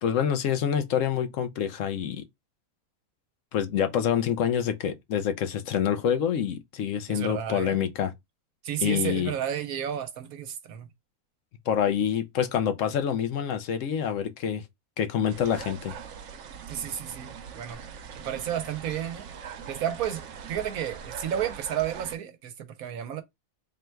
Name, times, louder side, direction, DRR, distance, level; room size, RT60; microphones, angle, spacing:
voice 1, 0.0-2.2 3.5-8.1 8.8-9.3 11.7-14.6 15.0-15.9, left 8 dB, 70° left, 0.9 m, -26 dB
voice 2, 7.1-7.9 8.6-10.9 16.7-17.8 18.2-19.3 19.7-23.2, right 10 dB, 85° right, 1.2 m, -32 dB
sound 1, 15.3-22.2, right 7 dB, 65° right, 0.9 m, -42 dB
3.7 x 2.2 x 4.4 m
omnidirectional pair, 1.5 m